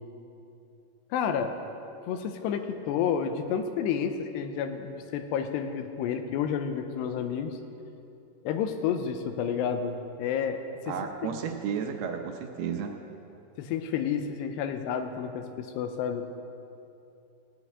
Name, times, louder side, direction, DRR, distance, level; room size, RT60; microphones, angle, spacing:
voice 1, 1.1-1.6 2.1-7.6 8.4-10.6 10.9-11.0 11.2-11.4 13.6-16.3, left 7 dB, 85° left, 8 dB, 2.8 m, -30 dB
voice 2, 10.9-12.9, right 7 dB, 75° right, 4 dB, 2.6 m, -32 dB
16.0 x 6.1 x 9.3 m, 2.8 s
omnidirectional pair, 4.9 m